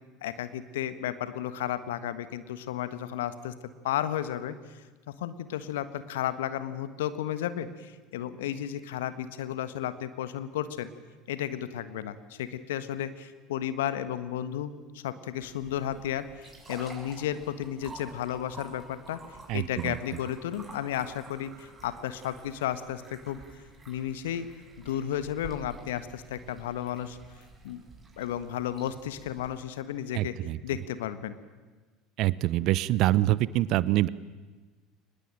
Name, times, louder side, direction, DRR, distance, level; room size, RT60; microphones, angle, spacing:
voice 1, 0.2-3.5 3.8-4.8 5.2-10.9 11.3-19.2 19.5-23.4 23.9-24.5 24.8-27.2 27.6-27.8 28.2-30.4 30.6-31.4, left 11 dB, 70° left, 13 dB, 1.4 m, -33 dB
sound 1, 15.4-29.6, right 3 dB, 20° right, 6.7 m, -50 dB
voice 2, 19.5-20.0 30.1-30.6 32.2-34.1, right 16 dB, 55° right, 20 dB, 0.8 m, -25 dB
23.5 x 20.5 x 9.1 m, 1.3 s
figure-of-eight pair, 70°, 0 cm